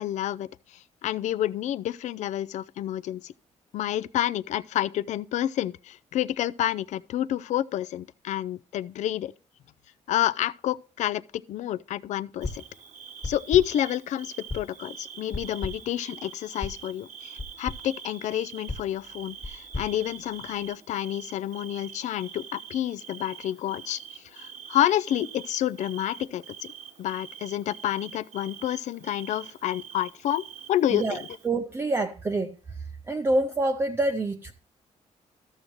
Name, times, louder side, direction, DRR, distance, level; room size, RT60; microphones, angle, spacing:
voice 1, 0.0-3.3 3.7-9.3 10.1-11.2 11.5-12.6 13.2-26.6 27.0-31.2, left 12 dB, 70° left, 0.4 m, -29 dB
sound 1, 12.4-12.8 13.2-13.9 14.5-14.9 15.3-16.0 16.6-16.9 17.4-17.9 18.7-20.7, left 2 dB, 20° left, 1.5 m, -37 dB
Bird / Cricket, 12.4-31.5, right 8 dB, 80° right, 1.2 m, -45 dB
voice 2, 30.9-32.6 33.1-34.5, right 2 dB, 20° right, 0.5 m, -26 dB
13.5 x 6.4 x 3.0 m
cardioid pair, 145°, 13 cm